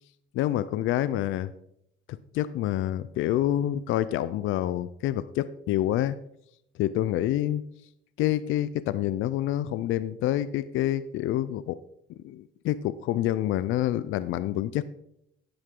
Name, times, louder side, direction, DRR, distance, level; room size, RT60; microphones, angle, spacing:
voice 1, 0.3-1.5 2.3-6.2 6.8-7.6 8.2-11.8 12.2-14.8, left 13 dB, 85° left, 15 dB, 0.4 m, -27 dB
10.0 x 7.9 x 3.8 m, 0.75 s
cardioid pair, 90°, 20 cm